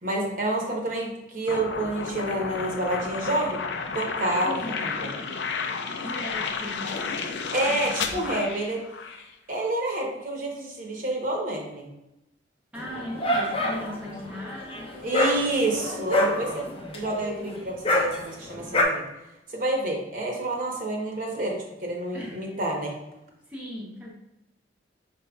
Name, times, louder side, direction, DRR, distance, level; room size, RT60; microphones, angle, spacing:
voice 1, 0.0-3.6 3.9-4.6 4.8-5.0 7.5-8.8 9.5-11.9 15.0-16.7 16.9-19.0 19.5-22.9, right 2 dB, 45° right, -1 dB, 1.0 m, -28 dB
sound 1, 1.5-9.3, left 5 dB, 70° left, 0.5 m, -32 dB
voice 2, 4.4-4.8 5.8-8.4 12.7-15.3 22.1-22.5 23.5-24.1, left 1 dB, 5° right, -5 dB, 0.7 m, -38 dB
Dog, 12.8-18.8, left 1 dB, 30° left, 0.6 m, -27 dB
5.3 x 4.3 x 2.3 m, 0.91 s
head